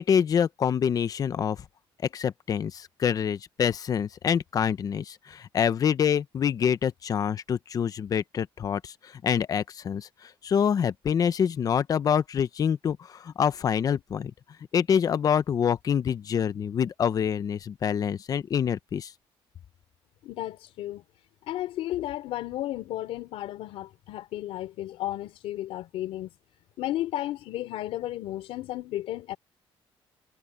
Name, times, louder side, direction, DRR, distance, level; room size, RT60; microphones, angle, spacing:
voice 1, 0.0-1.6 2.1-14.3 14.7-19.1, left 8 dB, 40° left, 0.8 m, -26 dB
voice 2, 20.2-21.0 21.5-26.3 26.8-29.4, left 14 dB, 85° left, 3.4 m, -33 dB
cardioid pair, 145°, 10 cm